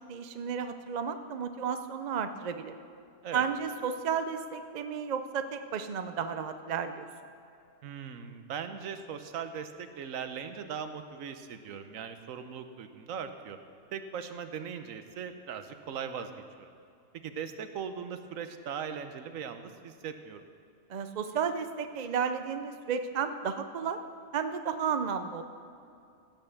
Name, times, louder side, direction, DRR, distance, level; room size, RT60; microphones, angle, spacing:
voice 1, 0.1-2.8 3.3-7.1 20.9-24.0 24.3-25.4, right 6 dB, 55° right, 8 dB, 0.5 m, -33 dB
voice 2, 7.8-13.6 13.9-16.3 16.6-16.7 17.2-20.4, right 7 dB, 85° right, 9 dB, 1.2 m, -39 dB
16.0 x 5.5 x 6.9 m, 2.5 s
omnidirectional pair, 1.4 m